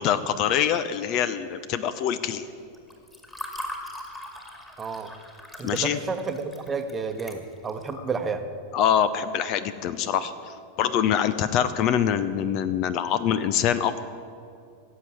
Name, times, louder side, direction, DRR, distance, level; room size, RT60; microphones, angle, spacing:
voice 1, 0.0-2.5 5.6-6.0 8.7-10.3 10.8-14.0, left 9 dB, 40° left, 13 dB, 0.6 m, -24 dB
Water / Fill (with liquid), 2.7-7.9, left 1 dB, 10° left, 2.2 m, -40 dB
voice 2, 4.8-5.1 5.6-8.4, right 4 dB, 20° right, 7 dB, 1.1 m, -31 dB
17.0 x 7.7 x 8.4 m, 2.4 s
figure-of-eight pair, 90°, 0 cm